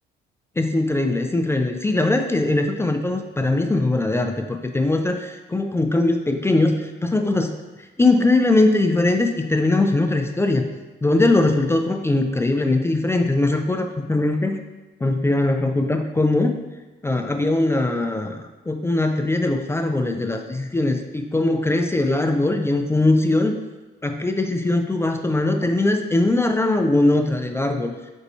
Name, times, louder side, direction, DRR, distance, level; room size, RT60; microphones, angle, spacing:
voice 1, 0.6-7.5 8.0-10.7 11.0-14.6 15.0-16.6 17.0-23.6 24.0-27.9, left 2 dB, 15° left, 5 dB, 0.3 m, -21 dB
4.5 x 4.1 x 2.7 m, 1.2 s
cardioid pair, 90°, 20 cm